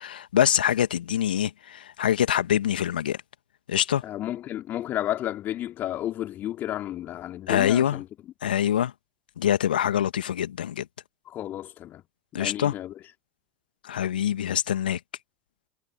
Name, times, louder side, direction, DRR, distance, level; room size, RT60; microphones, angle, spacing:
voice 1, 0.0-3.2 3.7-4.0 7.5-8.0 8.4-8.9 9.4-10.9 12.3-12.7 13.9-15.0, left 10 dB, 75° left, 2.0 m, -24 dB
voice 2, 4.0-8.1 11.3-12.0 12.3-13.0, left 12 dB, 40° left, 3.8 m, -32 dB
figure-of-eight pair, 75°, 5 cm